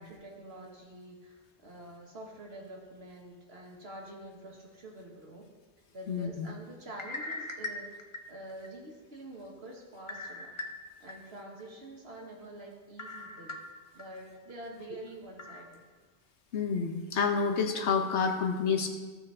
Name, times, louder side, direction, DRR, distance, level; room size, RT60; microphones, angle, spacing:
voice 1, 0.0-5.5 5.9-10.5 11.0-15.8, right 1 dB, 65° right, -1 dB, 1.9 m, -47 dB
voice 2, 6.1-6.5 16.5-18.9, left 5 dB, 80° left, 3 dB, 1.2 m, -29 dB
sound 1, 6.9-8.7 9.1-9.2 10.1-11.1 11.6-11.7 13.0-14.0 14.5-14.6 15.4-15.6, left 2 dB, 35° left, 0.7 m, -40 dB
15.0 x 5.8 x 3.5 m, 1.4 s
omnidirectional pair, 1.1 m